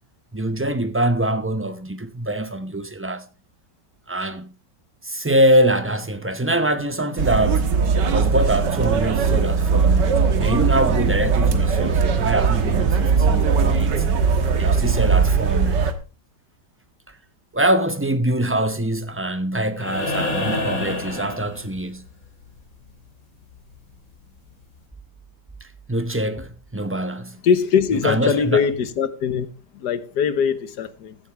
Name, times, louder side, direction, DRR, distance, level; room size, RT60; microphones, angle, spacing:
voice 1, 0.3-3.3 4.1-4.5 5.0-7.7 8.1-14.2 14.6-15.9 17.5-22.0 25.9-27.4 28.0-28.6, right 1 dB, 20° right, 0.3 m, -24 dB
sound 1, 7.2-15.9, right 5 dB, 85° right, 2.0 m, -19 dB
sound 2, 19.8-22.1 23.9-24.0, left 2 dB, 50° left, 3.6 m, -27 dB
voice 2, 27.4-31.2, left 7 dB, 70° left, 1.6 m, -22 dB
15.5 x 11.0 x 3.4 m
omnidirectional pair, 1.9 m